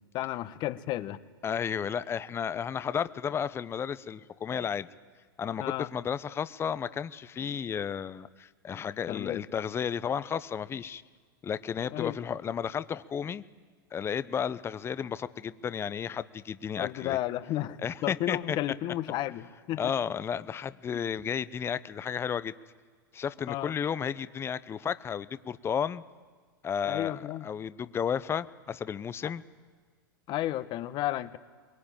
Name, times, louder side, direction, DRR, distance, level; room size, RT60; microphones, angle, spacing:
voice 1, 0.1-1.2 5.6-5.9 9.1-9.4 11.9-12.2 16.8-19.9 20.9-21.0 23.5-23.8 26.8-27.5 29.2-29.3 30.3-31.4, left 14 dB, 40° left, 13 dB, 1.2 m, -33 dB
voice 2, 1.4-4.9 5.4-11.0 11.4-13.4 13.9-17.2 17.8-18.6 19.8-22.5 23.1-26.0 26.6-29.4, left 7 dB, 20° left, 15 dB, 0.8 m, -33 dB
22.5 x 22.5 x 8.9 m, 1.5 s
hypercardioid pair, 105°, 12 cm